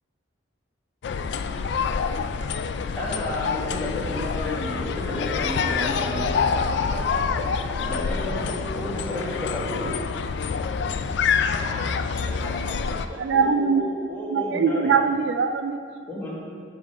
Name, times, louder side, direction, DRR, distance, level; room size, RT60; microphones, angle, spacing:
sound 1, 1.0-13.1, left 5 dB, 60° left, 0.3 m, -26 dB
voice 1, 3.0-6.2 7.9-8.4 8.7-9.9 13.3-14.9 16.1-16.4, left 1 dB, 10° left, -7 dB, 1.7 m, -31 dB
voice 2, 5.7-9.3 11.5-11.9 12.2-13.4, right 1 dB, 15° right, -5 dB, 0.7 m, -40 dB
voice 3, 13.2-13.9 14.3-16.0, right 5 dB, 65° right, 8 dB, 0.3 m, -22 dB
10.0 x 3.8 x 5.3 m, 2.2 s
head